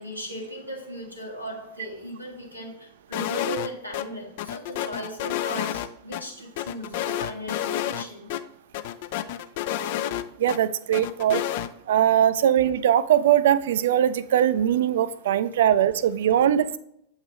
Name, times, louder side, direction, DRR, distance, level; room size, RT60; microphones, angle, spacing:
voice 1, 0.0-8.3, equal, 85° left, 1.6 m, -37 dB
sound 1, 3.1-3.7 3.9-4.0 4.4-6.2 6.6-8.0 8.3-8.4 8.7-10.6 10.9-11.7, left 12 dB, 50° left, 0.4 m, -29 dB
voice 2, 10.4-11.4 11.9-16.8, right 10 dB, 60° right, 0.4 m, -21 dB
8.0 x 4.8 x 3.1 m
figure-of-eight pair, 90°, 0 cm